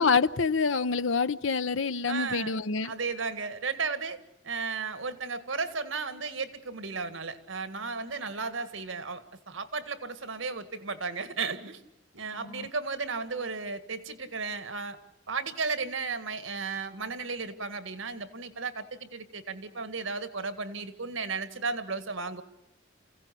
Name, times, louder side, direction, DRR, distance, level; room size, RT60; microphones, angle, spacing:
voice 1, 0.0-2.9 12.4-12.7, left 5 dB, 85° left, 0.8 m, -26 dB
voice 2, 2.1-2.5 2.8-4.2 4.4-11.8 12.1-15.0 15.3-22.4, right 4 dB, 90° right, 1.9 m, -34 dB
29.5 x 16.5 x 8.4 m
head